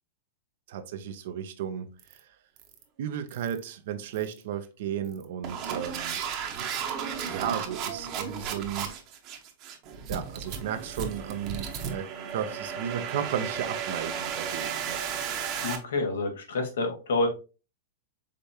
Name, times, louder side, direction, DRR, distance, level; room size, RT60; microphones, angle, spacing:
voice 1, 0.7-2.2 3.0-6.2 7.3-8.9 10.1-15.0, right 9 dB, 65° right, 0.7 m, -34 dB
sound 1, 2.0-2.2 2.6-2.8 3.3-3.6 4.2-4.4 5.0-15.8, right 7 dB, 40° right, 0.9 m, -34 dB
voice 2, 15.6-17.3, left 2 dB, 85° left, 1.4 m, -28 dB
5.0 x 3.4 x 2.7 m
hypercardioid pair, 135°, 0 cm